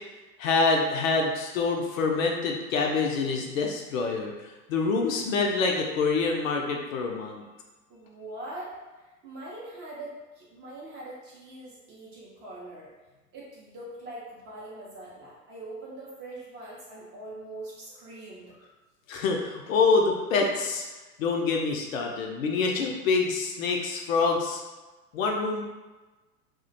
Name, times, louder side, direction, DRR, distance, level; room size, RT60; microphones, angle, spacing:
voice 1, 0.4-7.4 19.1-20.8 21.2-24.6 25.1-25.6, left 4 dB, 55° left, 1 dB, 0.5 m, -26 dB
voice 2, 7.9-12.9 13.3-18.5, right 1 dB, 25° right, -6 dB, 0.5 m, -42 dB
2.3 x 2.1 x 2.6 m, 1.2 s
hypercardioid pair, 100°, 49 cm